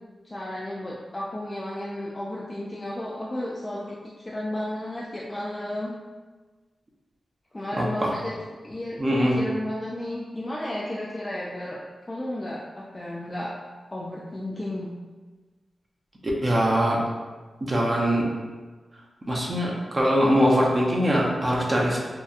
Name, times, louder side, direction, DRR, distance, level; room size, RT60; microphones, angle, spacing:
voice 1, 0.2-3.9 4.2-5.9 7.5-8.4 8.6-11.8 12.1-13.5 13.9-14.9, left 1 dB, 25° left, -5 dB, 0.3 m, -33 dB
voice 2, 7.8-8.1 9.0-9.4 16.2-17.0 17.6-18.3 19.3-22.0, equal, 35° right, -3 dB, 0.5 m, -22 dB
2.8 x 2.2 x 2.4 m, 1.3 s
cardioid pair, 75°, 0 cm